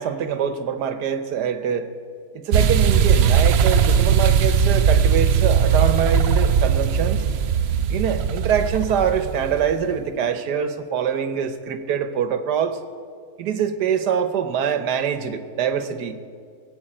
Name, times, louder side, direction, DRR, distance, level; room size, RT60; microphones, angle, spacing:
voice 1, 0.0-1.9 2.3-7.3 7.9-12.8 13.4-16.2, right 7 dB, 85° right, 11 dB, 1.5 m, -24 dB
sound 1, 2.5-9.7, right 7 dB, 60° right, 0.7 m, -19 dB
17.0 x 8.0 x 8.8 m, 2.1 s
omnidirectional pair, 1.7 m